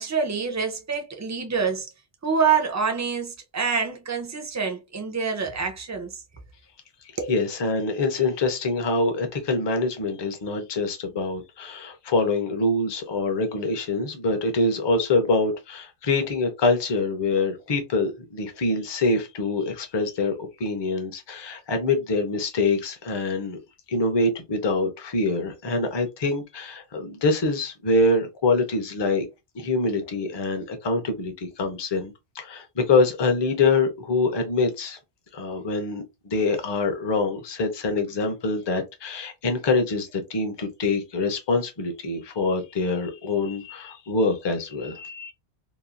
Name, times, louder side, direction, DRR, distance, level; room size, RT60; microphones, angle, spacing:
voice 1, 0.0-1.9 2.2-6.2 7.2-7.3, right 5 dB, 30° right, 0.3 m, -26 dB
voice 2, 7.3-20.3 20.6-23.6 23.9-29.3 29.6-35.0 35.3-45.3, left 3 dB, 30° left, 0.5 m, -25 dB
3.0 x 2.2 x 2.4 m
omnidirectional pair, 1.1 m